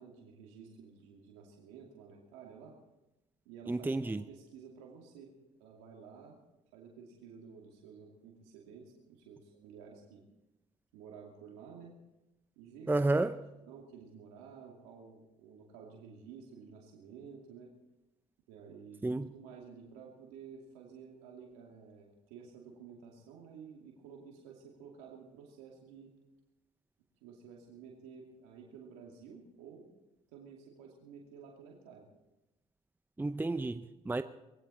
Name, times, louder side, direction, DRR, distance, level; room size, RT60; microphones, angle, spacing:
voice 1, 0.0-2.8 3.4-5.3 5.6-6.4 6.7-10.2 10.9-11.9 12.6-13.3 13.6-17.7 18.5-26.1 27.2-29.9 30.3-32.1, right 6 dB, 80° right, -1 dB, 2.4 m, -52 dB
voice 2, 3.7-4.2 12.9-13.4 19.0-19.3 33.2-34.2, right 2 dB, 10° right, 11 dB, 0.7 m, -31 dB
20.0 x 16.0 x 4.3 m, 0.97 s
hypercardioid pair, 60°, 16 cm